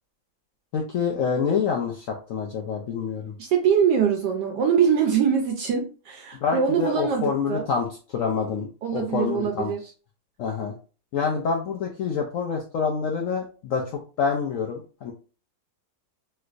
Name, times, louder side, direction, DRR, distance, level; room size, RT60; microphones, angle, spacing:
voice 1, 0.7-3.3 6.4-8.7 8.9-9.7 10.4-10.7 11.1-15.1, left 6 dB, 90° left, 0 dB, 0.7 m, -27 dB
voice 2, 3.4-7.7 8.8-9.9, right 7 dB, 75° right, 3 dB, 1.1 m, -23 dB
3.2 x 3.0 x 2.4 m, 0.36 s
omnidirectional pair, 2.0 m